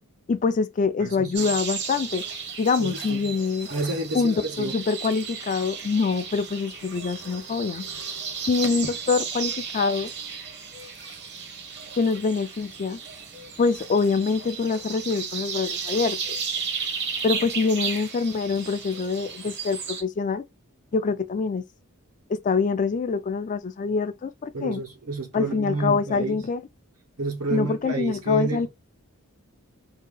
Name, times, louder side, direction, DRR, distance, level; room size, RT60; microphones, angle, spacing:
voice 1, 0.3-2.2 2.6-3.7 4.1-7.9 8.5-10.1 12.0-13.0 13.6-16.2 17.2-20.4 20.9-21.6 22.3-24.8 25.3-26.6 27.5-28.7, left 4 dB, 35° left, 0.4 m, -25 dB
voice 2, 1.0-1.5 2.8-3.3 3.7-4.8 24.5-26.4 27.2-28.7, right 2 dB, 90° right, 1.2 m, -30 dB
sound 1, 1.3-20.0, right 6 dB, 55° right, 0.9 m, -34 dB
2.8 x 2.7 x 3.7 m
head